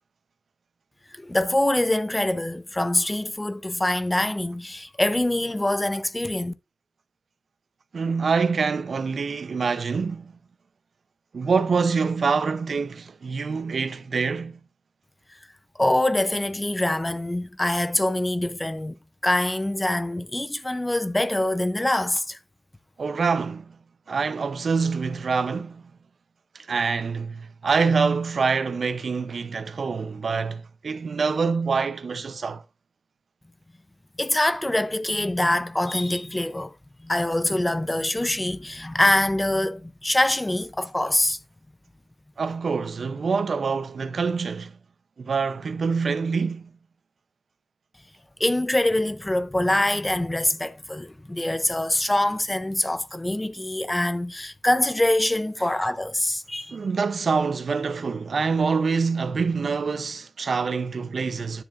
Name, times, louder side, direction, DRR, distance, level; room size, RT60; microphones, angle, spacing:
voice 1, 1.1-6.5 15.8-18.9 19.2-22.4 34.2-36.8 37.0-41.4 48.4-56.8, left 1 dB, 15° left, 0.6 m, -24 dB
voice 2, 7.9-10.3 11.3-14.6 23.0-23.8 24.1-25.8 26.5-32.6 42.4-44.8 45.2-46.6 56.7-61.6, right 5 dB, 75° right, 0.6 m, -25 dB
10.0 x 7.1 x 2.5 m
wide cardioid pair, 105°, 0 cm